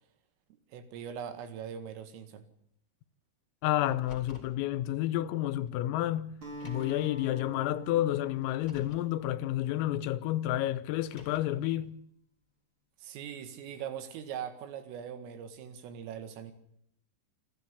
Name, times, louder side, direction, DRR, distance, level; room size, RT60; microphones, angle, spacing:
voice 1, 0.5-2.5 13.0-16.5, right 8 dB, 80° right, 4.5 m, -41 dB
voice 2, 3.6-6.3 6.6-12.0, left 14 dB, 90° left, 3.6 m, -30 dB
Car, 3.8-4.6 5.7-5.8 6.5-7.1 8.4-9.1 10.9-11.6, left 4 dB, 20° left, 2.8 m, -52 dB
Acoustic guitar, 6.4-10.9, right 2 dB, 25° right, 5.2 m, -47 dB
27.5 x 11.5 x 8.6 m
omnidirectional pair, 5.9 m